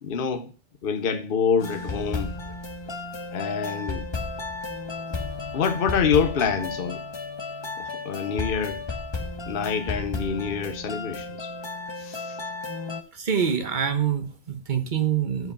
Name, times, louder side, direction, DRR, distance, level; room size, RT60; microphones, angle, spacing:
voice 1, 0.0-0.5 0.8-2.3 3.3-4.0 5.5-7.0 7.8-8.8 9.5-11.5 12.0-12.4, left 6 dB, 60° left, 1.0 m, -26 dB
sound 1, 1.6-13.0, left 3 dB, 30° left, 0.9 m, -33 dB
voice 2, 13.1-15.5, right 8 dB, 50° right, 1.2 m, -25 dB
8.1 x 4.8 x 6.8 m
omnidirectional pair, 1.1 m